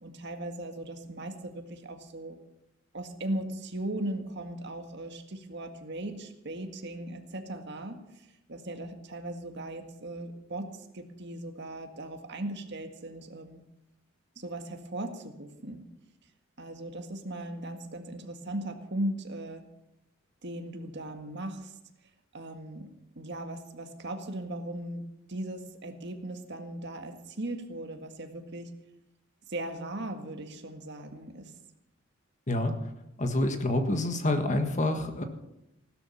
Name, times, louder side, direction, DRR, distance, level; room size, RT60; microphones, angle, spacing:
voice 1, 0.0-2.4 2.9-8.0 8.5-13.6 14.4-15.8 16.6-19.6 20.4-21.7 22.3-22.9 23.2-25.0 25.3-28.7 29.5-31.5, right 1 dB, 55° right, 5 dB, 1.8 m, -38 dB
voice 2, 33.2-35.2, left 1 dB, 35° left, 6 dB, 1.6 m, -27 dB
16.5 x 12.5 x 5.8 m, 0.88 s
head